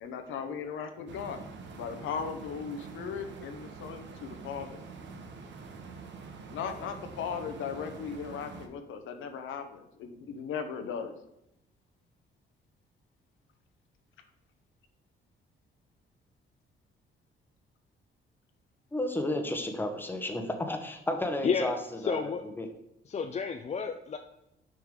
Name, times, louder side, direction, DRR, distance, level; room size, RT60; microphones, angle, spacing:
voice 1, 0.0-1.4 1.8-4.8 6.5-11.1, left 6 dB, 80° left, 7 dB, 0.8 m, -37 dB
sound 1, 1.1-8.7, right 4 dB, 65° right, 0.9 m, -46 dB
voice 2, 18.9-21.8 22.0-22.7, left 1 dB, 10° left, 5 dB, 0.9 m, -32 dB
voice 3, 22.0-22.4 23.1-24.2, left 6 dB, 35° left, 6 dB, 0.4 m, -30 dB
6.1 x 4.9 x 3.7 m, 0.83 s
cardioid pair, 90°, 20 cm